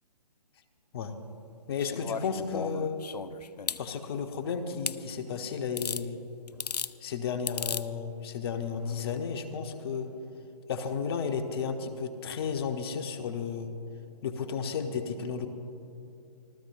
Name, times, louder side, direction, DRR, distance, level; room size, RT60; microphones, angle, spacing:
voice 1, 1.7-3.0 3.8-6.2 7.0-10.1 10.7-13.7 14.2-15.5, left 6 dB, 40° left, 7 dB, 1.1 m, -33 dB
sound 1, 1.8-3.8 4.9-5.0 5.8-6.0 6.5-6.9 7.5-7.8 9.1-9.2, left 6 dB, 80° left, 0.5 m, -35 dB
sound 2, 6.5-7.0 7.3-7.6 8.6-10.2, left 1 dB, 5° right, 2.4 m, -58 dB
26.5 x 14.5 x 2.5 m, 2.7 s
figure-of-eight pair, 135°, 20 cm